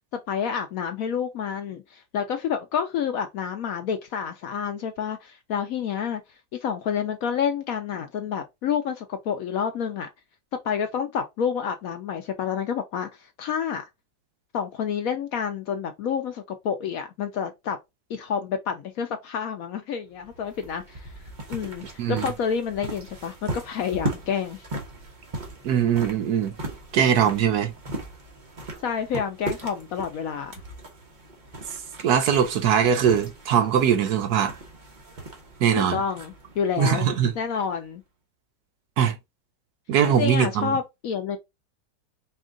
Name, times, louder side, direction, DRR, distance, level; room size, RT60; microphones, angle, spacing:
voice 1, 0.1-6.2 6.5-10.1 10.6-13.8 14.5-17.8 18.1-21.1 21.5-24.6 28.8-30.5 35.8-37.1 37.4-38.0 40.1-41.4, left 7 dB, 65° left, 0.9 m, -29 dB
sound 1, 20.2-37.8, right 2 dB, 30° right, 1.0 m, -38 dB
voice 2, 25.6-26.5 26.9-27.7 32.0-34.6 35.6-36.0 36.8-37.3 39.0-39.2 39.9-40.7, right 8 dB, 70° right, 1.2 m, -21 dB
4.4 x 2.4 x 3.7 m
omnidirectional pair, 1.9 m